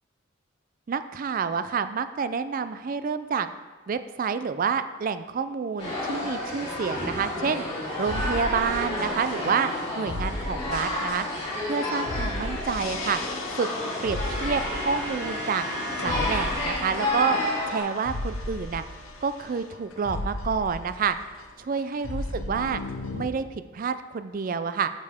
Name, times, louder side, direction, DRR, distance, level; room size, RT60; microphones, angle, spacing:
voice 1, 0.9-3.5 3.9-7.6 8.0-9.7 10.0-11.3 11.6-13.2 13.6-13.7 14.0-15.7 16.0-17.4 17.7-18.8 19.2-21.2 21.6-22.8 23.1-24.9, right 6 dB, 45° right, 12 dB, 0.3 m, -28 dB
sound 1, 5.8-17.8, left 1 dB, 30° left, 2.7 m, -31 dB
sound 2, 7.1-7.7 8.1-11.8 12.1-21.4 21.7-23.3, left 2 dB, 85° left, 0.7 m, -36 dB
sound 3, 13.2-21.6, equal, 25° right, 2.7 m, -40 dB
9.4 x 6.6 x 3.5 m, 1.4 s
head